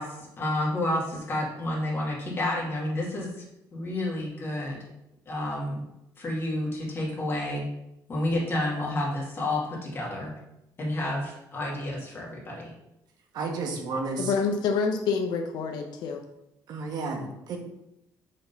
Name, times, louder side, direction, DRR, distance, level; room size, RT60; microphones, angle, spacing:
voice 1, 0.0-3.4 3.7-4.8 5.3-5.8 6.2-7.6 8.1-10.3 10.8-12.7, left 1 dB, 35° left, -4 dB, 2.4 m, -30 dB
voice 2, 13.3-14.3 16.7-17.6, right 3 dB, 70° right, 3 dB, 1.2 m, -32 dB
voice 3, 14.2-16.2, left 5 dB, 75° left, 3 dB, 0.7 m, -27 dB
5.1 x 3.9 x 5.6 m, 0.86 s
cardioid pair, 110°, 7 cm